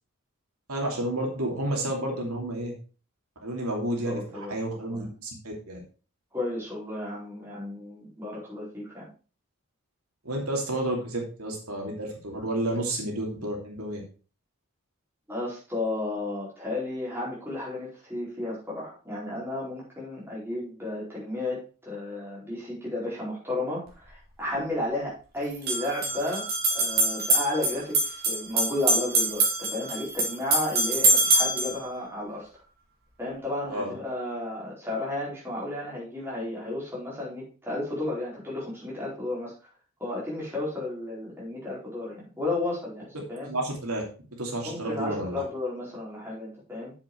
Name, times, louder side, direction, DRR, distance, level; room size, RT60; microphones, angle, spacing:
voice 1, 0.7-2.7 3.4-5.8 10.2-14.0 33.7-33.9 43.4-44.0 44.4-45.4, right 1 dB, 90° right, 0 dB, 2.9 m, -31 dB
voice 2, 4.0-4.5 4.9-5.1 6.3-9.1 15.3-32.5 33.2-39.5 40.0-43.5 44.6-46.9, left 2 dB, 10° right, -6 dB, 4.5 m, -33 dB
sound 1, 23.9-24.0 25.5-31.8, right 2 dB, 45° right, 3.3 m, -24 dB
7.6 x 7.2 x 4.5 m, 0.36 s
head